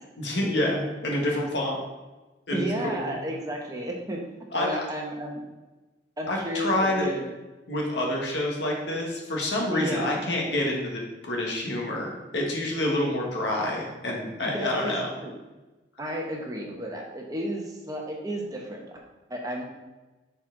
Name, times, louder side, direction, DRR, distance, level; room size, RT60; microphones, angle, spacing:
voice 1, 0.2-1.8 2.5-3.1 4.5-4.9 6.3-7.1 7.7-15.1, left 1 dB, 75° left, -1 dB, 1.4 m, -28 dB
voice 2, 2.5-5.4 6.2-7.2 9.7-10.2 14.4-14.9 15.2-15.3 16.0-19.0 19.3-19.6, right 1 dB, 20° right, 0 dB, 0.9 m, -32 dB
6.6 x 4.5 x 3.8 m, 1.1 s
head